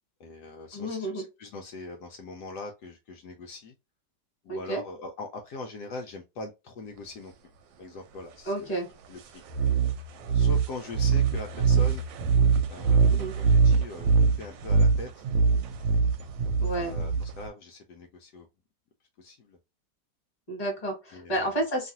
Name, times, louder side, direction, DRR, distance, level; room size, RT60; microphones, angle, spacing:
voice 1, 0.2-3.7 4.4-7.3 7.8-8.7 9.1-9.4 10.2-12.0 12.7-15.2 16.8-18.5 19.2-19.6 21.1-21.5, left 3 dB, 75° left, 2 dB, 1.1 m, -41 dB
voice 2, 0.7-1.2 4.5-4.8 8.4-8.9 13.1-13.3 16.6-16.9 20.5-21.9, right 1 dB, 25° left, 0 dB, 1.4 m, -31 dB
sound 1, 9.5-17.5, right 5 dB, 85° right, 1.3 m, -23 dB
2.9 x 2.4 x 2.7 m, 0.25 s
omnidirectional pair, 1.9 m